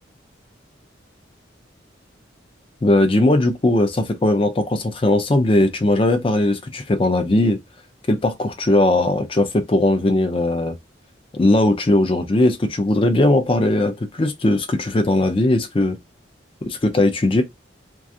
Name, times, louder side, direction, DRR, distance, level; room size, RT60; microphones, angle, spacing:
voice 1, 2.8-7.6 8.1-10.8 11.3-16.0 16.7-17.4, left 1 dB, 30° left, 0.4 m, -18 dB
2.4 x 2.3 x 2.6 m
head